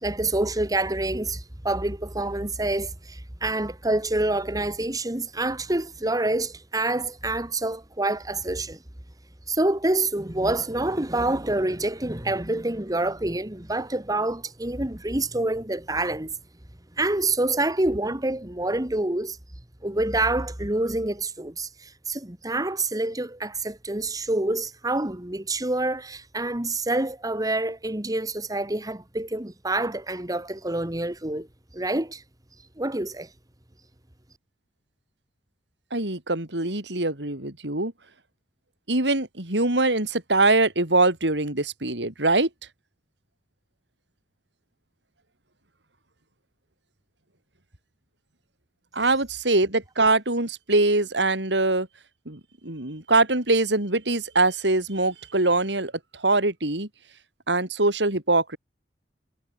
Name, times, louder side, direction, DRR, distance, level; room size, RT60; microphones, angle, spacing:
voice 1, 0.0-8.8 9.5-16.3 17.0-19.4 19.8-31.5 31.7-32.2 32.8-33.3, right 2 dB, 20° right, 1.9 m, -27 dB
voice 2, 35.9-37.9 38.9-42.5 48.9-51.9 52.3-56.9 57.5-58.6, right 2 dB, 85° right, 4.8 m, -23 dB
head